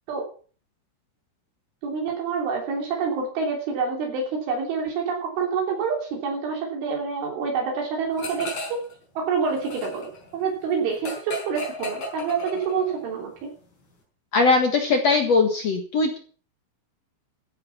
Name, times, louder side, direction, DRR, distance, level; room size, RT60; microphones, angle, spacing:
voice 1, 1.8-8.8 9.2-13.5, right 5 dB, 70° right, 0 dB, 5.5 m, -27 dB
sound 1, 8.2-8.9 9.2-13.0, left 1 dB, 35° left, 5.8 m, -34 dB
voice 2, 14.3-16.2, left 4 dB, 75° left, 4 dB, 1.5 m, -20 dB
16.5 x 11.0 x 5.7 m, 0.41 s
omnidirectional pair, 5.9 m